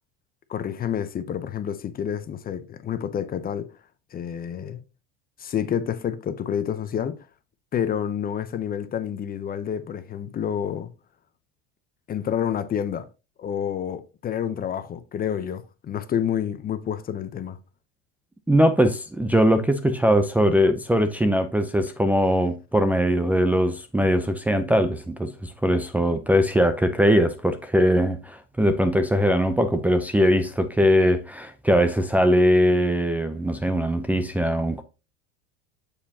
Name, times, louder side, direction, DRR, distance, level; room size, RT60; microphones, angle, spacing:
voice 1, 0.5-3.7 4.1-4.8 5.4-7.2 7.7-10.9 12.1-13.1 13.4-17.6, left 9 dB, 30° left, 0.7 m, -28 dB
voice 2, 18.5-34.8, equal, 5° right, 0.6 m, -21 dB
7.2 x 6.7 x 2.8 m
supercardioid pair, 110°, 30 cm